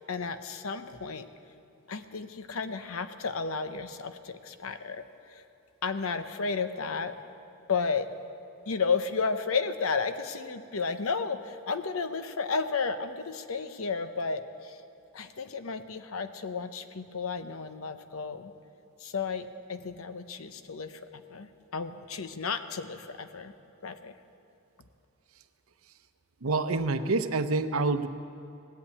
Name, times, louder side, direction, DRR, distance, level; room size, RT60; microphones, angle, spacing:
voice 1, 0.1-1.3 1.9-5.0 5.3-5.4 5.8-7.2 7.7-8.1 8.7-14.8 15.1-18.5 19.0-23.5 23.8-24.1, left 5 dB, 80° left, 10 dB, 0.8 m, -33 dB
voice 2, 26.4-28.1, right 3 dB, 85° right, 10 dB, 0.7 m, -27 dB
18.5 x 8.5 x 8.4 m, 2.8 s
head